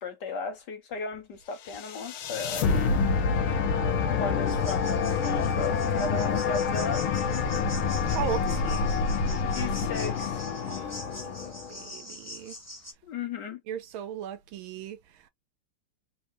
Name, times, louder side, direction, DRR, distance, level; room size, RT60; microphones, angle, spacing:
voice 1, 0.0-2.7 4.1-7.1 9.5-10.4 13.0-13.6, left 4 dB, 60° left, 1.3 m, -35 dB
sound 1, 1.7-11.9, left 5 dB, 75° left, 1.5 m, -27 dB
sound 2, 4.5-12.9, left 1 dB, 10° left, 0.7 m, -44 dB
voice 2, 8.0-8.9 9.4-9.5 10.7-12.6 13.7-15.3, right 9 dB, 75° right, 1.4 m, -38 dB
3.9 x 3.2 x 2.6 m
omnidirectional pair, 2.4 m